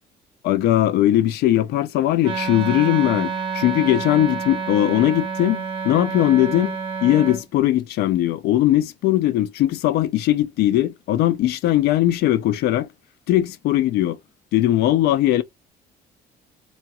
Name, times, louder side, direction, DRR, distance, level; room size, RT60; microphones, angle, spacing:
voice 1, 0.4-6.8 7.0-12.9 13.3-14.2 14.5-15.4, left 13 dB, 75° left, 0.4 m, -19 dB
Wind instrument woodwind instrument, 2.2-7.4, right 5 dB, 30° right, 0.9 m, -28 dB
4.2 x 2.3 x 2.8 m
cardioid pair, 110°, 17 cm